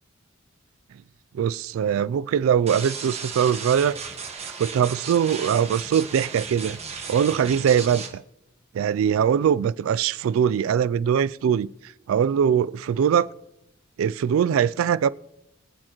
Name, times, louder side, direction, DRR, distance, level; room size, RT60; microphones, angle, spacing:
voice 1, 1.3-4.0 4.4-6.8 7.1-8.2 8.7-13.3 14.0-15.1, right 8 dB, 75° right, 0.3 m, -22 dB
sound 1, 2.7-8.1, right 5 dB, 30° right, 1.2 m, -35 dB
23.5 x 8.7 x 3.0 m
head